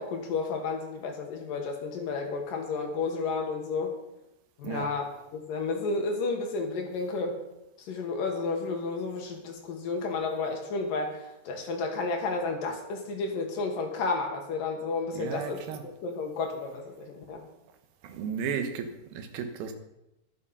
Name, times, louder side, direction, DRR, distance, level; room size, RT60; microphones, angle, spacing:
voice 1, 0.0-3.9 4.6-7.4 7.8-17.4, left 4 dB, 65° left, 2 dB, 2.8 m, -32 dB
voice 2, 15.1-15.8 18.0-19.7, right 6 dB, 70° right, 6 dB, 2.8 m, -34 dB
11.5 x 11.0 x 5.5 m, 0.91 s
omnidirectional pair, 4.9 m